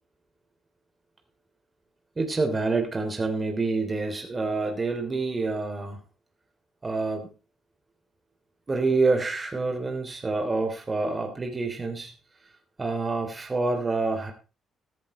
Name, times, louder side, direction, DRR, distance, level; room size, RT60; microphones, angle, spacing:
voice 1, 2.2-6.0 6.8-7.3 8.7-12.1 12.8-14.3, right 3 dB, 25° right, 4 dB, 3.4 m, -27 dB
14.0 x 13.5 x 3.3 m, 0.32 s
cardioid pair, 90°, 0 cm